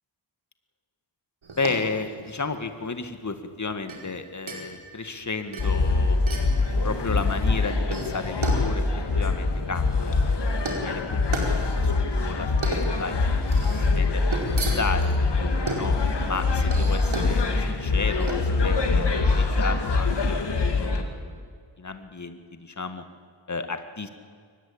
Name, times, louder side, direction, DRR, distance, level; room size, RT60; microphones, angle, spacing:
sound 1, 1.4-20.2, right 2 dB, 75° right, 4.8 m, -35 dB
voice 1, 1.6-6.2 6.8-8.8 9.2-11.4 11.7-13.4 13.8-16.0 16.2-21.4 21.8-23.0 23.5-24.1, left 4 dB, 35° left, 8 dB, 1.9 m, -33 dB
sound 2, 5.6-21.0, left 3 dB, 55° left, 2.3 m, -24 dB
23.0 x 20.0 x 8.8 m, 2.1 s
wide cardioid pair, 80°, 48 cm